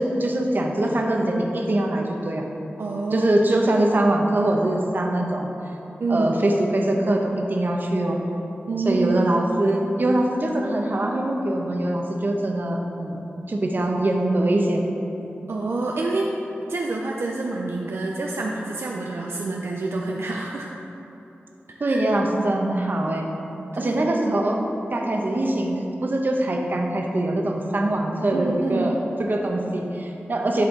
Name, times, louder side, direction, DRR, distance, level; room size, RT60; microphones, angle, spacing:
voice 1, 0.0-2.5 3.1-5.5 6.1-8.2 8.8-14.8 15.4-15.5 21.8-23.2 23.8-24.6 24.9-30.6, right 1 dB, 50° right, 1 dB, 0.9 m, -23 dB
voice 2, 2.8-3.3 3.6-3.7 6.0-6.4 8.7-9.3 15.5-16.3 16.7-20.7 21.7-22.0 23.8-24.2 28.3-28.9, right 3 dB, 75° right, -1 dB, 0.5 m, -27 dB
11.5 x 4.4 x 3.8 m, 3.0 s
wide cardioid pair, 80°, 4 cm